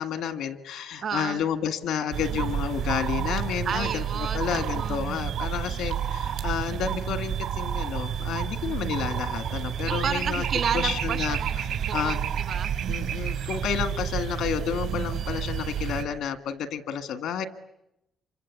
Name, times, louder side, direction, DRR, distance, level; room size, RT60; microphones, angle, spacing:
voice 1, 0.0-10.4 10.7-11.4 11.9-12.3 12.9-17.4, left 8 dB, 90° left, 10 dB, 1.8 m, -30 dB
voice 2, 1.0-1.4 3.6-5.0 9.8-12.7, right 7 dB, 65° right, 11 dB, 1.5 m, -32 dB
sound 1, 2.1-16.0, right 9 dB, 90° right, 4.3 m, -30 dB
27.0 x 25.5 x 8.6 m, 0.85 s
cardioid pair, 90°, 0 cm